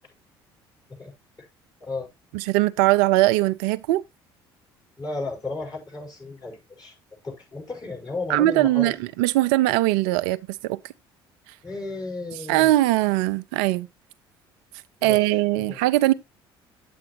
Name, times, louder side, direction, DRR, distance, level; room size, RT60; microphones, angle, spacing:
voice 1, 2.3-4.0 8.3-10.4 10.6-10.8 12.5-13.9 15.0-16.1, right 17 dB, 70° right, 0.4 m, -20 dB
voice 2, 5.0-6.9 7.2-9.0 11.6-12.7 15.0-15.8, left 3 dB, 30° left, 5.4 m, -34 dB
8.7 x 8.6 x 2.9 m
figure-of-eight pair, 55°, 13 cm